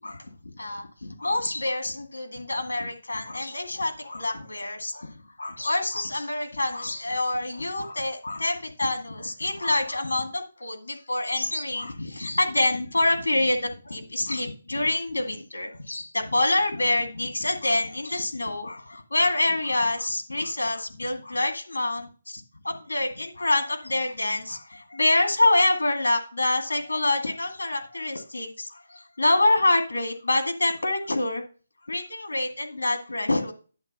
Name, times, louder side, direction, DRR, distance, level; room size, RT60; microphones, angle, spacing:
voice 1, 0.0-31.4 31.8-33.5, left 2 dB, 80° left, 4 dB, 2.0 m, -26 dB
10.5 x 3.7 x 5.4 m, 0.34 s
figure-of-eight pair, 155°, 0 cm